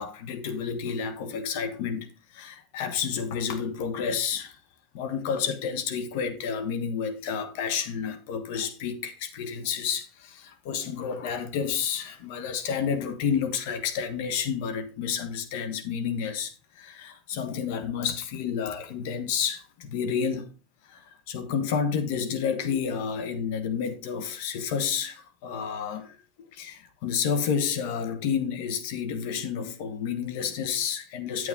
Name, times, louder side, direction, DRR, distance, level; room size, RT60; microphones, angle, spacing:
voice 1, 0.0-4.6 4.9-20.5 20.9-26.1 26.5-31.5, left 7 dB, 75° left, 1.4 m, -30 dB
8.8 x 6.4 x 3.8 m
supercardioid pair, 105°, 0 cm